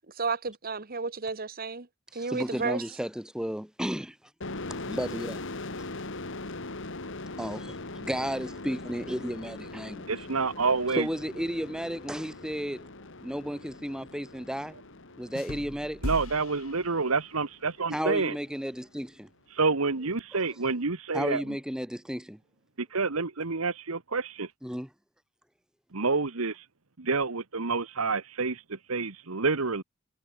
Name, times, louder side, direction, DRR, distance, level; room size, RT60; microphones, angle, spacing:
voice 1, 0.2-1.9 2.1-2.8, right 4 dB, 45° right, 1.6 m, -32 dB
voice 2, 2.1-4.2 4.9-5.4 7.4-10.1 10.9-12.9 13.2-14.8 15.2-16.0 17.9-19.3 20.3-20.4 21.1-22.4 24.6-24.9, equal, 5° right, 1.6 m, -33 dB
sound 1, 4.4-17.8, left 2 dB, 65° left, 2.3 m, -41 dB
voice 3, 10.1-11.1 16.0-18.4 19.5-21.4 22.8-24.5 25.9-26.5 27.0-29.8, right 4 dB, 85° right, 1.4 m, -28 dB
sound 2, 15.4-17.6, left 1 dB, 85° left, 4.8 m, -38 dB
head